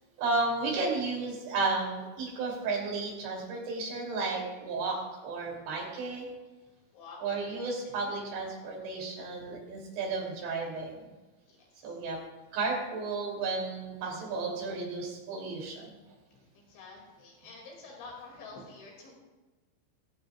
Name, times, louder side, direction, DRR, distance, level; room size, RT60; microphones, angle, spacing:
voice 1, 0.2-5.0 5.2-6.3 7.2-11.1 11.8-12.2 12.5-16.0, right 3 dB, 75° right, -2 dB, 5.4 m, -33 dB
voice 2, 7.5-8.2 9.4-9.5 9.8-9.9 11.5-12.0 16.3-19.2, left 3 dB, 80° left, -1 dB, 5.1 m, -49 dB
19.0 x 14.5 x 2.5 m, 1.2 s
omnidirectional pair, 5.3 m